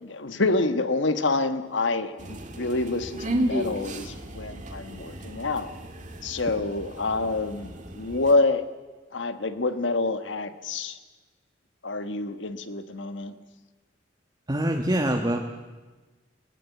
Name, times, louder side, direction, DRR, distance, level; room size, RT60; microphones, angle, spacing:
voice 1, 0.0-5.7 6.2-8.6 9.1-11.0 11.8-13.3, left 3 dB, 70° left, 10 dB, 1.3 m, -27 dB
sound 1, 2.2-8.3, right 1 dB, 40° right, 2.1 m, -34 dB
voice 2, 14.5-15.4, right 1 dB, 20° right, 3 dB, 1.3 m, -24 dB
20.0 x 17.5 x 8.3 m, 1.3 s
head